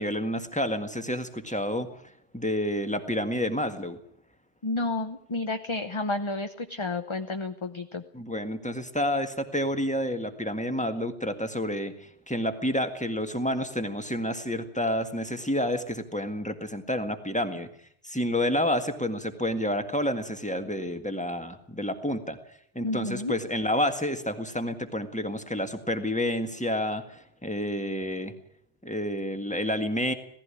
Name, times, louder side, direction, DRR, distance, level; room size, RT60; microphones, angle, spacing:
voice 1, 0.0-1.9 2.3-4.0 8.1-17.7 18.0-22.4 22.7-28.3 28.8-30.1, left 1 dB, 5° left, 7 dB, 1.7 m, -29 dB
voice 2, 4.6-8.0 22.8-23.4, left 2 dB, 30° left, 7 dB, 0.9 m, -31 dB
17.5 x 15.0 x 9.9 m, 0.68 s
omnidirectional pair, 1.0 m